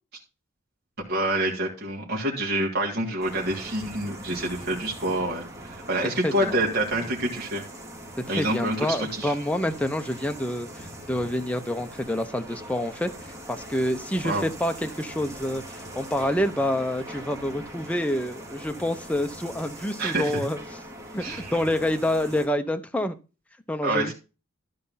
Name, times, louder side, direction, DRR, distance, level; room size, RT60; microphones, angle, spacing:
voice 1, 1.1-7.6 8.3-9.3 14.2-14.4 20.0-20.4 21.2-21.5 23.8-24.1, right 1 dB, 50° right, -3 dB, 3.1 m, -27 dB
sound 1, 3.2-22.5, right 1 dB, 15° right, 2.7 m, -41 dB
voice 2, 6.2-6.6 8.2-13.1 13.5-20.6 21.1-23.2 23.7-24.1, left 1 dB, 5° left, 7 dB, 0.7 m, -27 dB
12.5 x 5.4 x 5.6 m, 0.31 s
head